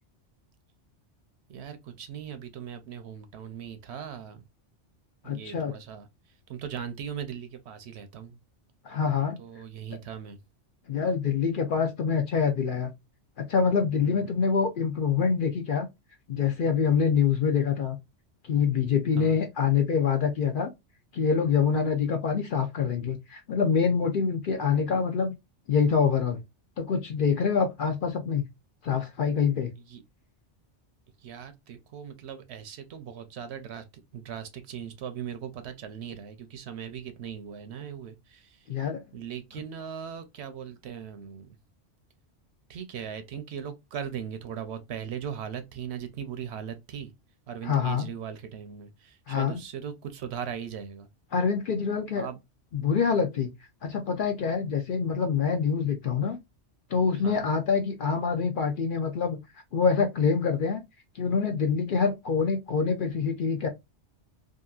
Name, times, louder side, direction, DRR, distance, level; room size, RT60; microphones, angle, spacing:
voice 1, 1.5-4.4 5.2-6.1 6.5-8.4 9.4-10.4 14.0-14.4 19.2-19.4 29.8-30.0 31.2-33.8 34.1-38.7 39.1-41.6 42.7-47.1 47.5-51.1 52.1-52.4 57.2-57.5, right 8 dB, 70° right, 0.8 m, -39 dB
voice 2, 5.2-5.7 8.8-9.4 10.9-12.9 13.4-15.9 16.3-18.0 18.4-20.7 21.1-25.3 25.7-26.4 26.8-28.5 28.8-29.7 38.7-39.0 47.6-48.1 49.3-49.6 51.3-52.3 52.7-53.5 53.8-56.4 56.9-59.4 59.7-60.8 61.1-63.7, left 6 dB, 60° left, 0.6 m, -25 dB
2.8 x 2.5 x 2.3 m
omnidirectional pair, 1.2 m